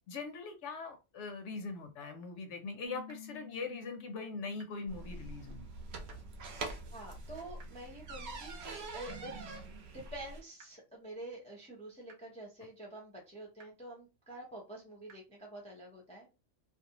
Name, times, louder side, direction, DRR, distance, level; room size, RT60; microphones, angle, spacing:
voice 1, 0.0-5.7, left 4 dB, 75° left, 6 dB, 0.9 m, -41 dB
Bass guitar, 2.8-9.1, left 9 dB, 25° right, 0.7 m, -56 dB
sound 1, 3.1-3.2 4.6-4.7 6.1-6.2 7.6-7.7 9.1-9.2 10.6-10.7 12.1-12.2 13.6-13.7 15.1-15.2, right 4 dB, 85° right, 1.1 m, -56 dB
sound 2, 4.9-10.4, right 3 dB, 65° right, 0.9 m, -44 dB
voice 2, 6.9-9.7 9.9-16.3, right 1 dB, 5° left, -3 dB, 0.5 m, -48 dB
2.5 x 2.0 x 2.8 m, 0.27 s
omnidirectional pair, 1.3 m